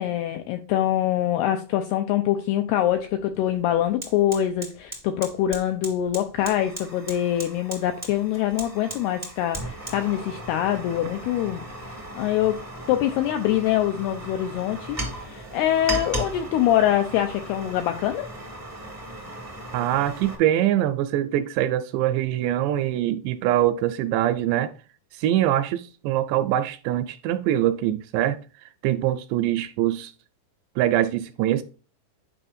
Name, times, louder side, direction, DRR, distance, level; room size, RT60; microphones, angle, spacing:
voice 1, 0.0-11.6 12.1-12.6 12.9-18.3, left 12 dB, 90° left, 2.3 m, -24 dB
Fire, 2.9-3.0 3.3-20.4, right 1 dB, 20° right, 0.4 m, -37 dB
voice 2, 19.7-24.7 25.1-28.4 28.8-30.1 30.8-31.6, right 12 dB, 85° right, 2.6 m, -23 dB
9.9 x 5.5 x 2.6 m
omnidirectional pair, 5.3 m